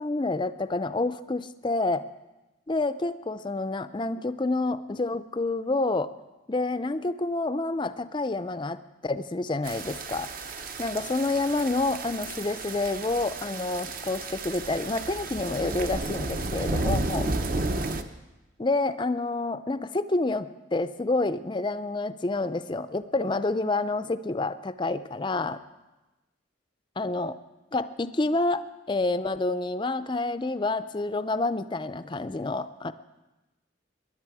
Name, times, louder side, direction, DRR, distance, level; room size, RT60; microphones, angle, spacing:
voice 1, 0.0-2.0 2.7-6.1 6.5-10.3 10.8-17.4 18.6-25.6 27.0-27.4 27.7-32.9, left 2 dB, 25° left, 12 dB, 0.4 m, -28 dB
sound 1, 9.6-18.0, right 2 dB, 45° right, 0.7 m, -32 dB
21.0 x 11.0 x 4.8 m, 1.1 s
head